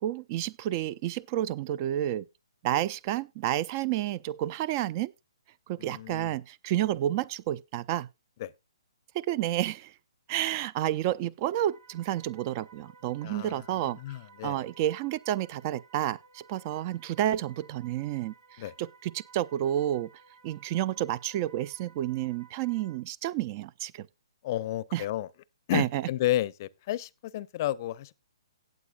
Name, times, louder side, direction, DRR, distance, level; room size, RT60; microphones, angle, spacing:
voice 1, 0.0-2.2 2.6-5.1 5.7-8.1 9.1-9.9 10.3-14.0 14.4-18.3 18.8-20.1 20.4-24.1 24.9-25.0 25.7-26.0, right 12 dB, 35° right, 0.5 m, -30 dB
voice 2, 5.8-6.4 8.4-8.5 13.2-13.6 14.0-14.6 18.6-18.7 24.4-25.3 25.7-28.1, left 14 dB, 40° left, 0.6 m, -32 dB
sound 1, 11.5-23.0, right 5 dB, 60° right, 3.6 m, -57 dB
17.5 x 7.6 x 2.4 m
figure-of-eight pair, 130°, 3 cm